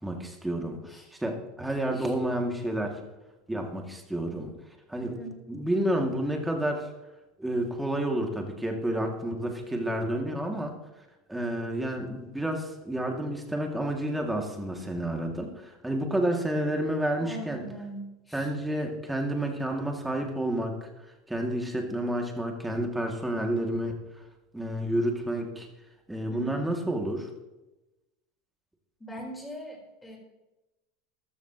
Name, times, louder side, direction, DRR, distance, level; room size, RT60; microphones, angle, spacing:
voice 1, 0.0-0.8 1.2-3.0 3.5-4.5 4.9-5.1 5.5-6.9 7.4-10.7 11.3-17.6 18.3-20.9 21.3-24.0 24.5-25.7 26.1-27.3, right 1 dB, 5° right, 2 dB, 2.5 m, -30 dB
voice 2, 17.2-18.5 26.3-26.5 29.0-30.2, right 1 dB, 10° left, 0 dB, 4.4 m, -41 dB
15.0 x 12.5 x 3.1 m, 1.0 s
supercardioid pair, 125°, 0 cm